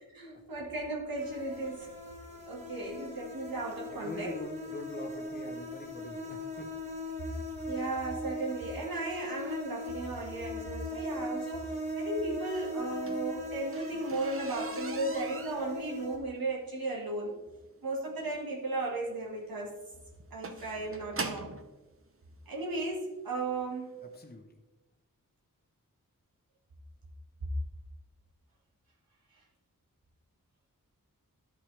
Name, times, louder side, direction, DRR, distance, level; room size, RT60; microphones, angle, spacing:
voice 1, 0.1-1.9 2.5-4.3 7.7-11.7 12.0-17.4 17.8-19.7 20.3-21.5 22.5-23.9, right 2 dB, 90° right, -3 dB, 1.8 m, -35 dB
sound 1, 1.2-16.2, left 1 dB, 20° right, 1.8 m, -39 dB
voice 2, 3.9-6.7 24.0-24.6, left 2 dB, 30° left, 3 dB, 1.0 m, -43 dB
sound 2, 12.8-21.7 22.6-22.7 23.2-23.4 23.7-23.8 24.1-24.2, right 3 dB, 40° right, 0.8 m, -42 dB
11.5 x 6.1 x 3.3 m, 1.1 s
wide cardioid pair, 75°, 34 cm